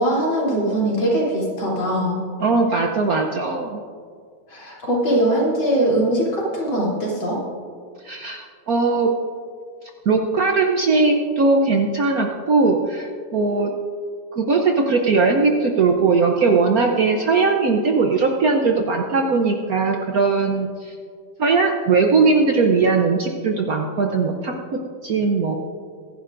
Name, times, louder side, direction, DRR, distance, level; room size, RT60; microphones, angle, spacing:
voice 1, 0.0-2.2 4.5-7.4, right 1 dB, 70° left, -5 dB, 4.1 m, -21 dB
voice 2, 2.4-3.8 8.0-9.1 10.1-13.7 14.4-21.0 21.4-25.6, right 4 dB, 60° right, 3 dB, 1.0 m, -19 dB
23.5 x 11.0 x 2.6 m, 2.1 s
omnidirectional pair, 2.3 m